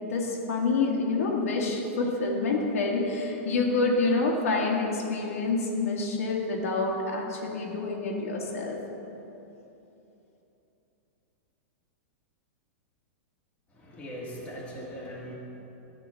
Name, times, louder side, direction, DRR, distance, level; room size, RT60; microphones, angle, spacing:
voice 1, 0.1-8.8, left 3 dB, 80° left, -1 dB, 1.6 m, -27 dB
voice 2, 13.7-15.3, equal, 15° left, -5 dB, 1.6 m, -40 dB
11.0 x 3.8 x 6.9 m, 3.0 s
supercardioid pair, 155°, 8 cm